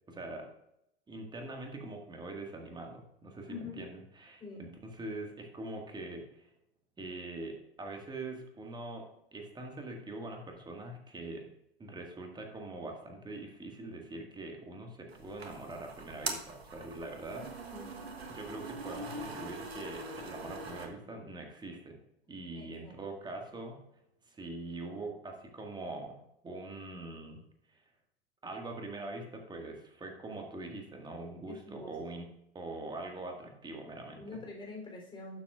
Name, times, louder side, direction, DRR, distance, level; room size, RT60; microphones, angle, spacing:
voice 1, 0.1-0.5 1.1-6.5 7.0-9.0 9.3-11.5 11.8-17.5 18.3-22.0 22.3-23.8 24.3-26.2 26.4-27.4 27.7-27.8 28.4-32.3 32.5-34.4, right 2 dB, 15° right, 2 dB, 1.8 m, -43 dB
voice 2, 3.5-3.8 4.4-4.6 17.7-18.1 22.5-23.0 31.5-31.9 34.1-35.4, left 3 dB, 15° left, -1 dB, 3.4 m, -45 dB
sound 1, 15.1-20.9, right 3 dB, 75° right, 1.5 m, -42 dB
12.0 x 7.3 x 2.4 m, 0.81 s
figure-of-eight pair, 90°, 32 cm